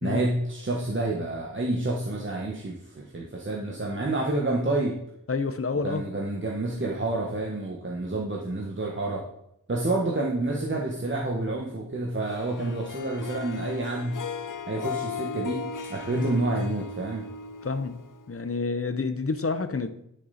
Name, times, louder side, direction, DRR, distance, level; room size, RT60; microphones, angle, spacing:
voice 1, 0.0-5.0 5.8-9.2 9.7-14.2 14.7-15.6 15.9-17.2, right 2 dB, 35° right, 1.5 m, -28 dB
voice 2, 5.3-6.0 16.1-16.3 17.6-18.0 18.3-20.0, left 4 dB, 45° left, 0.9 m, -29 dB
Harp, 12.3-18.5, left 5 dB, 70° left, 0.8 m, -37 dB
12.5 x 6.8 x 4.2 m
wide cardioid pair, 80°, 32 cm